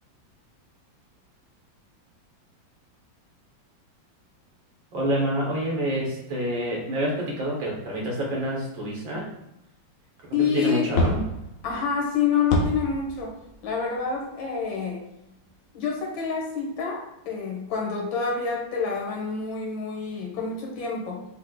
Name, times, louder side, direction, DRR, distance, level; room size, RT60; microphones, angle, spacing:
voice 1, 4.9-9.2 10.4-11.2, equal, 80° right, -3 dB, 2.1 m, -27 dB
voice 2, 10.3-10.9 11.6-13.3 13.6-15.0 15.7-21.3, left 6 dB, 80° left, -1 dB, 1.9 m, -27 dB
sound 1, 10.9-14.9 15.5-15.6 16.4-16.5, left 1 dB, 60° left, 0.8 m, -29 dB
6.2 x 2.1 x 3.8 m, 0.83 s
omnidirectional pair, 2.1 m